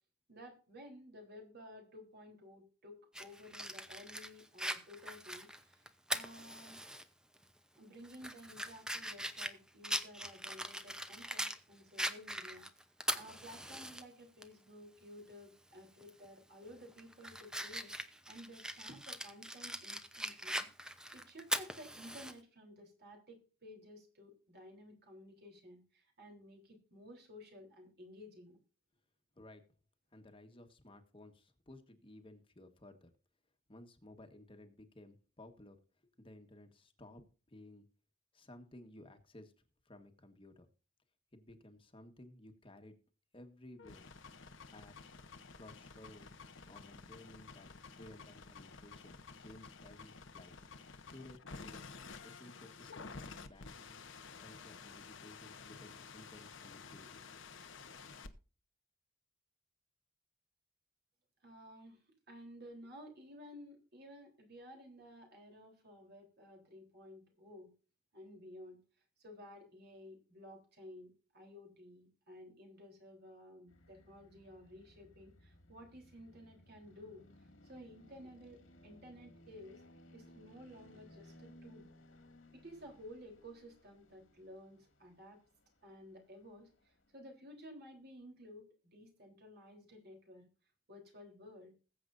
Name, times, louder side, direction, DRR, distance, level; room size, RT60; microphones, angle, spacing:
voice 1, 0.3-6.8 7.7-12.7 13.1-20.7 21.1-28.6 61.4-62.0 62.3-67.7 68.1-68.8 69.2-79.8 80.1-81.9 82.5-85.4 85.8-90.5 90.9-91.7, equal, 55° right, 3 dB, 3.7 m, -54 dB
Fire, 3.1-7.0 7.4-7.5 8.0-11.6 12.0-14.0 14.4-14.5 16.0-16.3 16.7-22.3, right 1 dB, 5° right, 0.8 m, -41 dB
voice 2, 29.3-29.7 30.1-33.1 33.7-35.8 36.2-37.9 38.3-39.5 39.8-40.7 41.3-43.0 43.3-44.1 44.7-45.1 45.6-46.3 46.6-47.7 48.0-50.5 51.1-51.9 52.2-54.0 54.4-57.2, left 1 dB, 25° left, 6 dB, 1.4 m, -56 dB
sound 1, 43.8-58.3, left 4 dB, 65° left, 1.1 m, -52 dB
sound 2, 73.7-87.1, left 1 dB, 85° left, 2.3 m, -62 dB
20.5 x 7.8 x 2.6 m, 0.36 s
head